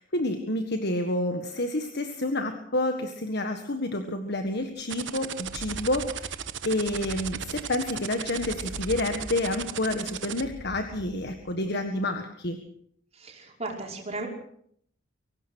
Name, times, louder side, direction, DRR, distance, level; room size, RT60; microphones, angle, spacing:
voice 1, 0.0-12.6, left 1 dB, 55° left, 7 dB, 1.7 m, -29 dB
sound 1, 4.8-4.9 5.3-11.5, equal, 35° left, 4.5 m, -44 dB
sound 2, 4.9-10.4, right 9 dB, 65° right, 1.1 m, -35 dB
voice 2, 13.1-14.3, right 2 dB, 35° right, 0 dB, 5.4 m, -35 dB
24.0 x 18.0 x 6.5 m, 0.66 s
head